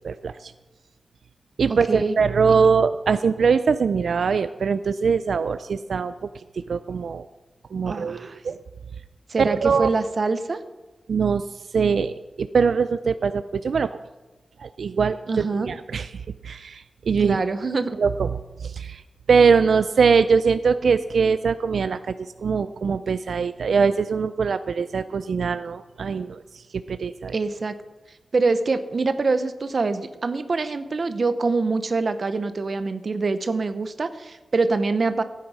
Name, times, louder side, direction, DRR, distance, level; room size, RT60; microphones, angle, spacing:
voice 1, 0.0-0.5 1.6-6.1 6.5-7.3 7.7-8.6 9.4-9.9 11.1-11.4 11.7-13.9 14.6-16.1 16.4-17.4 18.0-18.3 18.6-19.0 19.3-27.3, right 5 dB, 85° right, 12 dB, 0.3 m, -22 dB
voice 2, 1.7-2.2 7.8-8.4 9.3-10.6 15.3-15.7 17.2-18.0 27.3-27.7 28.3-35.2, right 3 dB, 50° right, 11 dB, 0.8 m, -24 dB
15.0 x 9.4 x 4.8 m, 1.1 s
wide cardioid pair, 140°, 0 cm